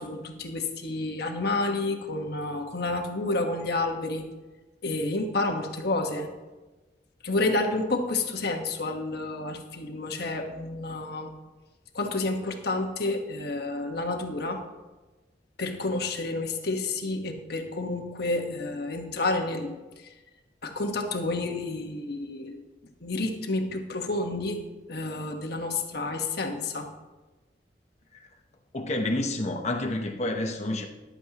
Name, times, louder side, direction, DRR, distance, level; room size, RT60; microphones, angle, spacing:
voice 1, 0.0-4.2 4.8-6.3 7.2-11.3 11.9-14.6 15.6-19.8 20.6-22.6 23.0-24.6 24.9-26.9, left 2 dB, 65° left, 4 dB, 1.4 m, -30 dB
voice 2, 28.7-30.8, left 1 dB, 40° left, 3 dB, 0.9 m, -29 dB
14.0 x 11.5 x 3.0 m, 1.2 s
head